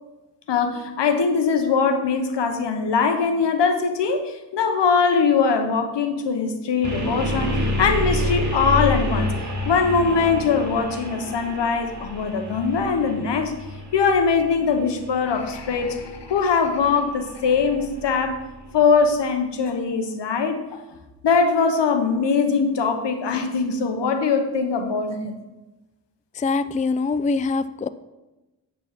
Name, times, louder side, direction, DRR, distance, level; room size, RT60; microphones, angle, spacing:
voice 1, 0.5-9.3 9.6-13.5 13.9-18.4 18.7-20.6 21.2-25.3, left 5 dB, 85° left, 7 dB, 1.0 m, -21 dB
sound 1, 6.8-18.8, left 1 dB, 45° right, 2.2 m, -29 dB
voice 2, 26.3-27.9, left 4 dB, 20° left, 14 dB, 0.4 m, -23 dB
9.6 x 4.1 x 5.8 m, 1.1 s
cardioid pair, 40°, 42 cm